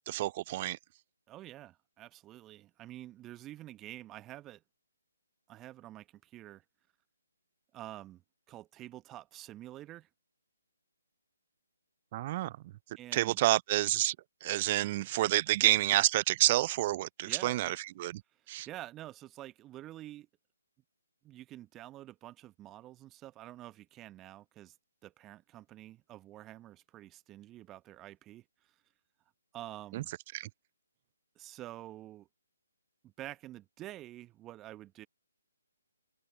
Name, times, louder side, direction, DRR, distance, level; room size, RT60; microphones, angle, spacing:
voice 1, 0.1-0.8 12.1-12.5 13.1-14.2 14.4-18.2 18.5-18.7 29.9-30.0 30.3-30.5, right 16 dB, 30° right, 0.4 m, -29 dB
voice 2, 1.3-4.6 5.5-6.6 7.7-8.2 8.5-10.1 13.0-13.4 17.3-17.7 18.5-20.3 21.2-24.7 25.0-28.4 29.5-30.1 31.4-32.3 33.0-35.1, right 14 dB, 15° right, 1.0 m, -48 dB
figure-of-eight pair, 140°, 0 cm